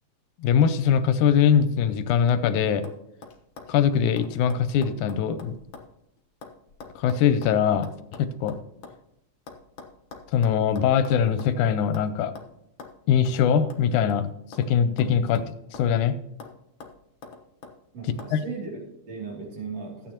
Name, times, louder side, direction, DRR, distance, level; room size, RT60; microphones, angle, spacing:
voice 1, 0.4-2.8 3.7-5.5 7.0-7.9 8.2-8.6 10.3-12.3 13.1-14.3 14.6-15.4 15.7-16.2 18.3-18.4, left 8 dB, 80° left, 11 dB, 2.0 m, -22 dB
sound 1, 2.2-2.5 2.8-3.0 3.2-5.9 6.2-9.0 9.5-11.6 11.9-12.1 12.4-12.5 12.8-12.9 13.3-13.4 13.7-14.7 15.0-16.0 16.4-16.5 16.8-17.8 18.2-18.3, left 4 dB, 60° left, 1.2 m, -44 dB
voice 2, 17.9-20.1, right 4 dB, 55° right, -2 dB, 3.9 m, -37 dB
14.0 x 9.2 x 2.9 m, 0.79 s
omnidirectional pair, 3.7 m